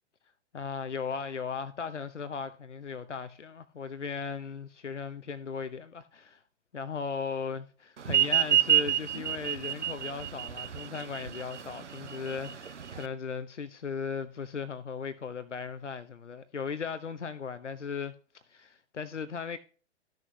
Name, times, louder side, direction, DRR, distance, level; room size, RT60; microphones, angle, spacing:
voice 1, 0.5-6.4 6.7-19.6, left 5 dB, 85° left, 0.8 m, -37 dB
sound 1, 8.1-13.1, right 11 dB, 80° right, 0.6 m, -27 dB
13.0 x 6.5 x 3.2 m
figure-of-eight pair, 110°, 35 cm